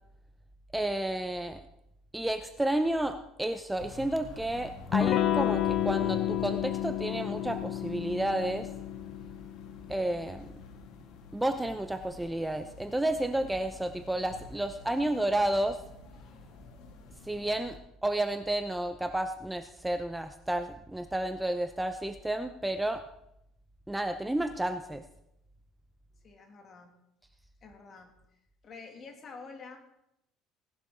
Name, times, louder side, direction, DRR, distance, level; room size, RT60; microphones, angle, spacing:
voice 1, 0.7-1.6 2.1-8.7 9.9-10.5 11.3-15.8 17.3-17.8 18.0-23.0 23.9-25.0, right 1 dB, 5° right, 8 dB, 0.7 m, -31 dB
sound 1, 3.8-17.8, left 4 dB, 70° left, 2.4 m, -48 dB
Electric guitar / Strum, 4.9-10.3, left 11 dB, 55° left, 0.8 m, -30 dB
voice 2, 26.2-26.9 27.6-28.1 28.6-29.8, left 4 dB, 40° left, 3 dB, 2.6 m, -48 dB
18.0 x 11.5 x 3.9 m, 0.81 s
cardioid pair, 120°, 0 cm